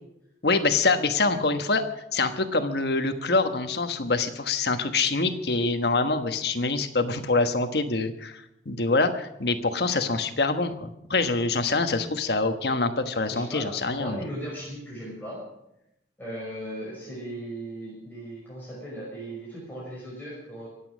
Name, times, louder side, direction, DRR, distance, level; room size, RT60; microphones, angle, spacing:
voice 1, 0.4-1.8 2.1-14.2, left 3 dB, 70° left, 8 dB, 1.3 m, -25 dB
voice 2, 13.3-15.4 16.2-20.7, right 1 dB, 10° left, -6 dB, 5.6 m, -37 dB
24.0 x 8.6 x 6.2 m, 0.83 s
head